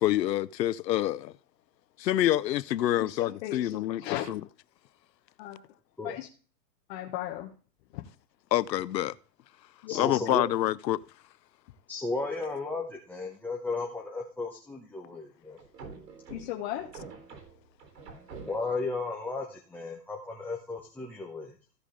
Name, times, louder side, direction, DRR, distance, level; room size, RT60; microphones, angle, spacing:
voice 1, 0.0-1.3 2.0-4.4 8.5-9.1 9.9-11.0, left 13 dB, 90° left, 0.8 m, -27 dB
voice 2, 3.0-3.7 4.0-4.2 5.4-5.6 6.0-6.3 6.9-7.5 7.9-8.0 9.8-10.1 16.3-16.9, left 13 dB, 40° left, 1.6 m, -36 dB
voice 3, 9.9-10.4 11.9-15.6 18.5-21.5, left 3 dB, 5° left, 1.1 m, -34 dB
sound 1, 15.6-18.9, right 4 dB, 75° right, 3.7 m, -46 dB
15.5 x 5.2 x 5.1 m
hypercardioid pair, 150°, 49 cm